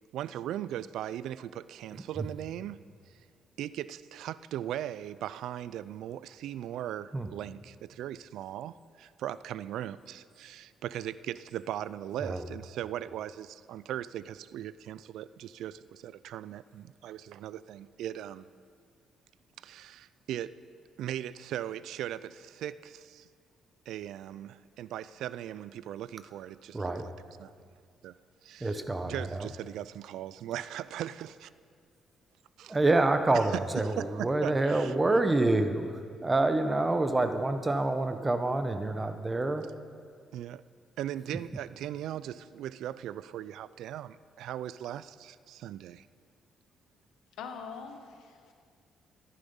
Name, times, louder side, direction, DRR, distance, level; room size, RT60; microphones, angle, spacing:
voice 1, 0.1-2.8 3.1-3.2 3.6-18.5 19.6-20.5 21.0-23.3 23.9-27.1 27.4-27.5 28.0-28.1 28.4-31.5 32.6-32.8 33.5-33.6 34.0-34.9 40.3-40.6 41.0-46.1, right 11 dB, 80° right, 17 dB, 0.3 m, -39 dB
voice 2, 26.7-27.1 28.6-29.5 32.7-39.6, right 2 dB, 20° right, 8 dB, 1.0 m, -27 dB
voice 3, 47.4-48.5, left 6 dB, 85° left, 6 dB, 1.3 m, -43 dB
13.5 x 10.5 x 5.5 m, 2.1 s
cardioid pair, 90°, 0 cm